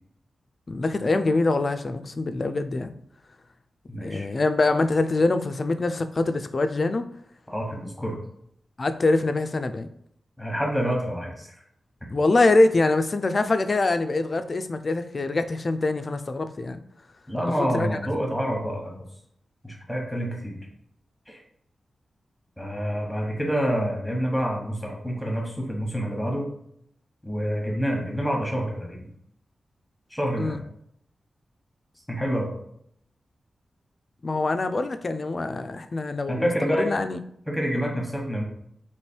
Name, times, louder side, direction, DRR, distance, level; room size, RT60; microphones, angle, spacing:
voice 1, 0.7-2.9 4.0-7.1 8.8-9.9 12.1-16.8 17.6-17.9 30.4-30.6 34.2-37.2, left 2 dB, 35° left, 9 dB, 0.3 m, -24 dB
voice 2, 3.9-4.3 7.5-8.2 10.4-11.5 17.3-19.0 19.6-20.6 21.3-21.4 22.6-26.5 27.2-29.1 30.1-30.6 32.1-32.5 36.3-36.9 37.5-38.4, equal, ahead, -1 dB, 1.1 m, -27 dB
3.2 x 3.0 x 4.3 m, 0.70 s
wide cardioid pair, 130°, 0 cm